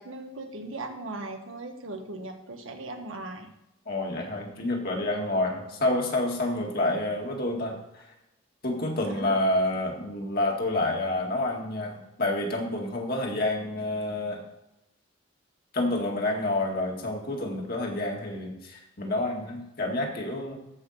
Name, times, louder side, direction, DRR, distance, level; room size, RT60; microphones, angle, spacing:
voice 1, 0.0-3.5 9.1-9.4, right 2 dB, 90° right, 4 dB, 1.5 m, -38 dB
voice 2, 3.9-8.0 8.6-14.4 15.7-20.6, left 1 dB, 50° left, 0 dB, 2.1 m, -28 dB
14.5 x 5.5 x 4.2 m, 0.89 s
head